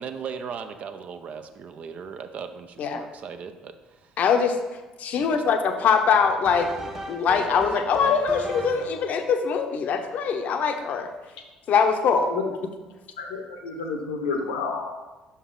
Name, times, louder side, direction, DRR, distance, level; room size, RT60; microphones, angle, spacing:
voice 1, 0.0-4.1 5.2-5.4, right 6 dB, 50° right, 8 dB, 0.6 m, -38 dB
voice 2, 4.2-4.6 5.0-11.1 11.7-12.3, left 6 dB, 55° left, 6 dB, 0.7 m, -23 dB
sound 1, 5.8-9.1, right 1 dB, 20° right, 1.2 m, -37 dB
voice 3, 13.2-14.9, left 4 dB, 80° left, 3 dB, 1.0 m, -30 dB
5.9 x 5.5 x 3.7 m, 1.2 s
hypercardioid pair, 55°, 3 cm